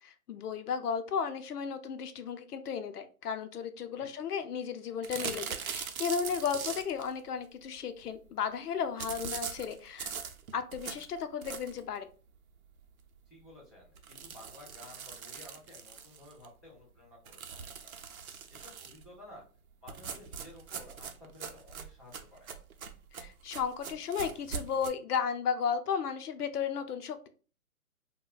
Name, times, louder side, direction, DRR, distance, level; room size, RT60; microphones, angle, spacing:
voice 1, 0.0-10.1 10.5-12.1 23.1-27.3, left 7 dB, 85° left, 10 dB, 0.6 m, -34 dB
sound 1, 5.0-7.1 9.0-11.9 12.4-12.5 12.8-12.9 13.2-13.3 13.9-16.5 17.3-19.0 19.9-24.9, right 7 dB, 70° right, 0.6 m, -41 dB
voice 2, 13.2-17.9 18.5-19.4 19.8-22.5, left 2 dB, 5° left, -19 dB, 1.0 m, -53 dB
2.4 x 2.1 x 3.8 m, 0.38 s
hypercardioid pair, 175°, 45 cm